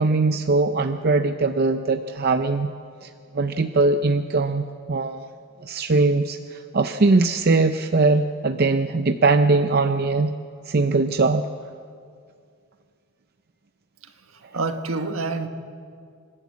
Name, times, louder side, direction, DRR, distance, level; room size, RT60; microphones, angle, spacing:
voice 1, 0.0-2.7 3.0-3.1 3.3-5.3 5.6-10.3 10.7-11.4, right 3 dB, 45° right, 8 dB, 0.6 m, -21 dB
voice 2, 14.3-15.5, right 3 dB, 70° right, 6 dB, 1.5 m, -28 dB
27.5 x 12.5 x 8.5 m, 2.2 s
head